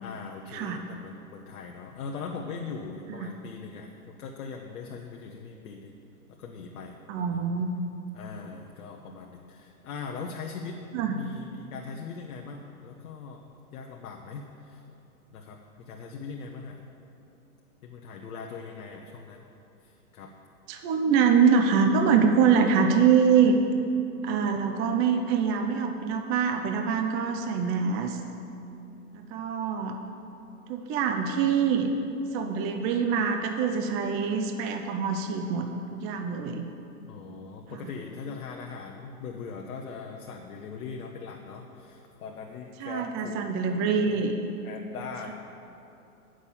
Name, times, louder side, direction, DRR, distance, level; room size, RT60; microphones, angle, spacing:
voice 1, 0.0-5.9 6.4-7.5 8.1-10.8 11.1-14.8 15.3-16.8 17.8-19.4 19.8-20.3 37.0-44.2 44.6-45.3, left 5 dB, 65° left, 1 dB, 1.0 m, -40 dB
voice 2, 7.1-7.7 10.9-11.1 20.7-23.6 24.2-28.2 29.1-30.0 30.7-31.9 32.3-36.7 37.7-37.9 42.8-44.3, right 6 dB, 30° right, 5 dB, 0.6 m, -24 dB
8.2 x 6.3 x 7.1 m, 2.8 s
hypercardioid pair, 110°, 46 cm